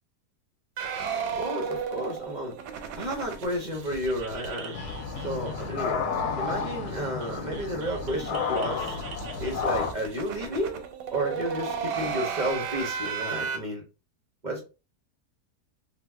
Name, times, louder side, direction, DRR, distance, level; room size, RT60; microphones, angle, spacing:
sound 1, 0.8-5.9 6.1-6.2 6.5-6.6 6.9-13.6, right 6 dB, 85° right, 1.2 m, -35 dB
voice 1, 1.4-2.5 3.0-4.8 5.2-6.0 6.4-9.0 9.4-10.8 11.1-13.8 14.4-14.6, equal, 60° right, 0 dB, 0.4 m, -32 dB
sound 2, 4.7-9.9, left 5 dB, 75° left, 1.1 m, -31 dB
2.7 x 2.0 x 3.3 m, 0.30 s
omnidirectional pair, 1.7 m